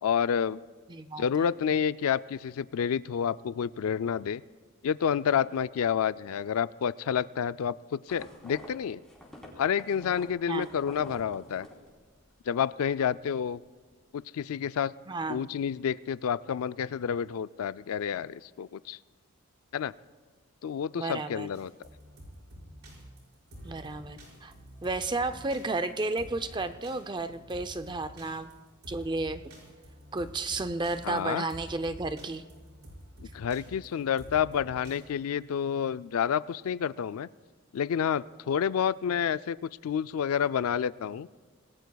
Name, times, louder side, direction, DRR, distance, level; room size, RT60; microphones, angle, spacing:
voice 1, 0.0-0.6 1.2-4.4 4.8-9.0 9.6-11.7 12.5-13.6 14.1-14.9 15.3-19.0 19.7-19.9 20.6-21.7 31.0-31.4 33.2-37.3 37.7-39.6 39.8-41.3, left 8 dB, 80° left, 16 dB, 0.4 m, -29 dB
voice 2, 0.9-1.3 10.5-10.7 15.1-15.4 20.9-21.5 23.6-24.5 24.8-28.5 28.9-29.4 30.1-32.4, right 2 dB, 20° right, 11 dB, 0.5 m, -32 dB
sound 1, 8.1-12.4 12.7-13.2, left 1 dB, 5° left, 3.3 m, -49 dB
sound 2, 21.5-35.0, equal, 90° right, 5.4 m, -48 dB
26.0 x 19.5 x 2.3 m, 1.5 s
head